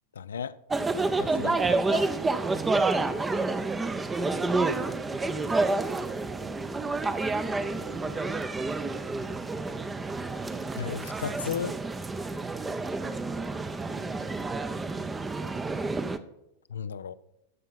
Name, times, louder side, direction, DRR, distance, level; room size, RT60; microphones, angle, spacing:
voice 1, 0.2-0.6 1.2-2.1 10.8-11.8 16.7-17.1, left 7 dB, 65° left, 0.4 m, -34 dB
sound 1, 0.7-16.2, right 3 dB, 15° right, 0.7 m, -29 dB
voice 2, 4.7-9.6 13.8-14.8, right 3 dB, 75° right, 3.9 m, -50 dB
14.5 x 5.6 x 5.7 m
figure-of-eight pair, 90°, 0 cm